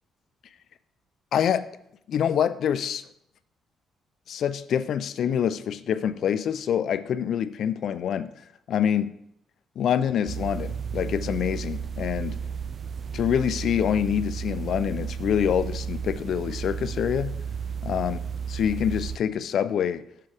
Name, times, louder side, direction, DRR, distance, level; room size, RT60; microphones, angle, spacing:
voice 1, 1.3-1.7 2.1-3.0 4.3-8.3 8.7-9.1 9.8-12.4 13.1-17.4 17.8-18.2 18.5-20.0, left 9 dB, 65° left, 0.4 m, -26 dB
sound 1, 10.3-19.2, right 7 dB, 45° right, 0.4 m, -33 dB
6.9 x 6.7 x 3.4 m
cardioid pair, 90°, 0 cm